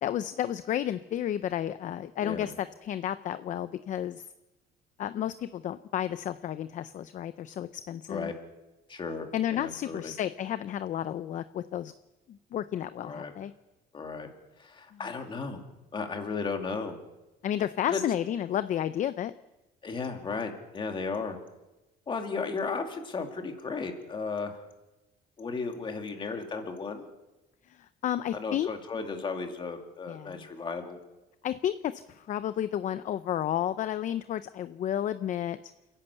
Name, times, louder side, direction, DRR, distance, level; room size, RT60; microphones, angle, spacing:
voice 1, 0.0-4.2 5.0-8.3 9.3-11.9 12.3-13.5 14.9-15.0 17.4-19.3 27.7-28.7 30.1-30.4 31.4-35.6, left 11 dB, 45° left, 13 dB, 0.6 m, -32 dB
voice 2, 2.2-2.5 8.1-8.3 8.9-10.1 13.0-13.3 13.9-14.3 14.6-15.6 15.9-17.0 17.9-18.0 19.8-21.4 22.1-24.6 25.4-27.0 28.3-31.0, left 4 dB, 30° left, 4 dB, 2.4 m, -35 dB
28.5 x 11.0 x 8.3 m, 1.0 s
cardioid pair, 150°, 17 cm